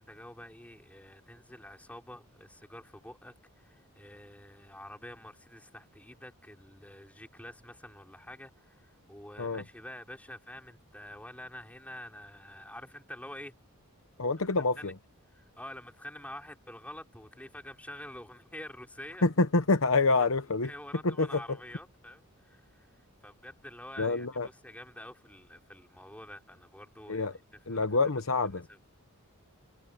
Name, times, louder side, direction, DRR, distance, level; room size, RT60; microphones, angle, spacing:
voice 1, 0.0-13.5 14.8-14.9 15.3-19.3 20.2-20.3 20.6-22.9 23.2-27.3 27.7-27.9 28.7-28.8, left 1 dB, 5° left, 3.3 m, -47 dB
voice 2, 14.2-14.9 19.2-20.7 21.0-21.4 24.0-24.5 27.1-27.4 27.7-28.7, left 3 dB, 65° left, 1.0 m, -27 dB
head